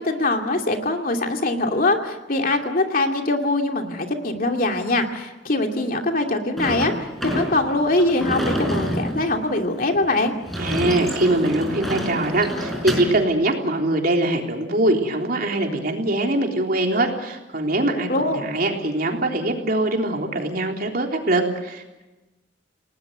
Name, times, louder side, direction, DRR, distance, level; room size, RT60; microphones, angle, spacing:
voice 1, 0.0-10.3 18.1-18.4, left 2 dB, 50° left, 3 dB, 2.6 m, -22 dB
Sliding door / Slam, 6.6-13.2, equal, ahead, 4.8 m, -28 dB
voice 2, 10.6-22.0, right 1 dB, 55° right, 2 dB, 3.6 m, -22 dB
29.5 x 19.0 x 8.1 m, 1.1 s
head